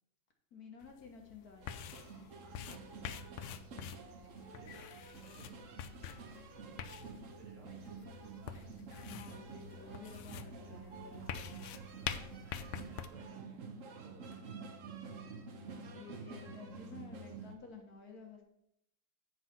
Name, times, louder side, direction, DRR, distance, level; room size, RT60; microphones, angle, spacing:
voice 1, 0.5-1.8 9.0-11.5 15.5-18.4, left 6 dB, 50° left, 2 dB, 1.5 m, -52 dB
sound 1, 0.8-13.1, left 9 dB, 85° left, 1.5 m, -46 dB
sound 2, 1.6-17.6, right 4 dB, 60° right, 0.9 m, -49 dB
voice 2, 2.4-3.8 4.5-6.0 6.9-8.8 12.4-14.5, right 2 dB, 80° right, 0 dB, 2.9 m, -62 dB
7.9 x 5.5 x 5.8 m, 0.78 s
omnidirectional pair, 2.3 m